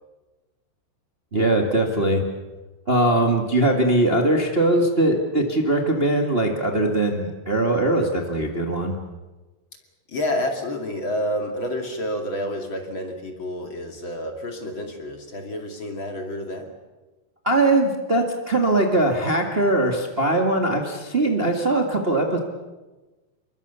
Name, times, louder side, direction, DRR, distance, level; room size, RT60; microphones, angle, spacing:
voice 1, 1.3-2.2 2.9-8.9 17.4-22.4, right 1 dB, 85° right, 2 dB, 0.5 m, -21 dB
voice 2, 10.1-16.7, left 1 dB, 35° left, 4 dB, 2.4 m, -29 dB
27.5 x 23.0 x 7.0 m, 1.2 s
omnidirectional pair, 4.9 m